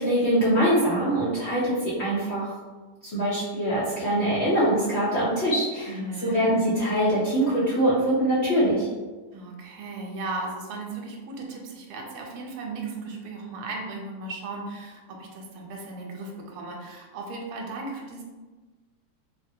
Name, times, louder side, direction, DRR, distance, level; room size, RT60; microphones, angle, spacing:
voice 1, 0.0-2.5 3.0-8.9, right 1 dB, 55° left, -9 dB, 0.8 m, -23 dB
voice 2, 5.9-6.5 9.3-18.2, right 3 dB, 75° right, 0 dB, 1.1 m, -36 dB
3.3 x 2.1 x 2.7 m, 1.3 s
omnidirectional pair, 1.8 m